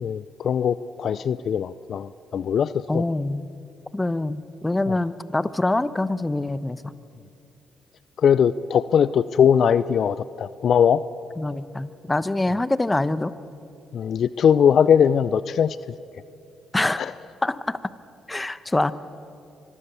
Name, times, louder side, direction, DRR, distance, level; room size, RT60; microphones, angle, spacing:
voice 1, 0.0-3.0 8.2-11.0 13.9-15.8 17.0-17.1, left 8 dB, 60° left, 16 dB, 0.5 m, -20 dB
voice 2, 2.9-3.5 3.9-6.9 11.4-13.3 16.7-17.1 17.4-17.8 18.3-18.9, left 2 dB, 20° left, 15 dB, 1.0 m, -25 dB
25.5 x 21.5 x 7.1 m, 2.6 s
hypercardioid pair, 50°, 0 cm